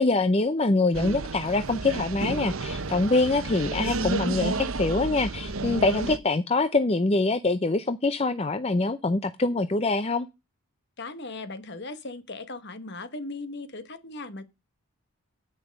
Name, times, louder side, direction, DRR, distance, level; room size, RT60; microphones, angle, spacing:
voice 1, 0.0-10.3, left 3 dB, 25° left, 0.5 m, -24 dB
sound 1, 0.9-6.2, right 3 dB, 65° right, 0.9 m, -31 dB
voice 2, 11.0-14.4, left 2 dB, 50° left, 1.2 m, -38 dB
9.7 x 8.9 x 5.2 m
head